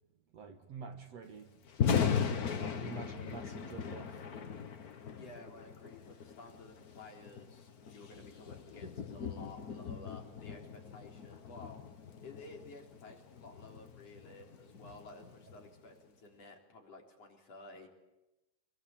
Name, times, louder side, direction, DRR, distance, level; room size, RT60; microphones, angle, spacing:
voice 1, 0.3-1.6 2.2-4.3, right 5 dB, 60° right, 2.3 m, -48 dB
Thunder, 1.6-15.8, left 7 dB, 70° left, 0.8 m, -38 dB
voice 2, 5.1-11.8 12.2-17.9, left 3 dB, 50° left, 4.8 m, -53 dB
27.0 x 22.5 x 8.7 m
omnidirectional pair, 3.8 m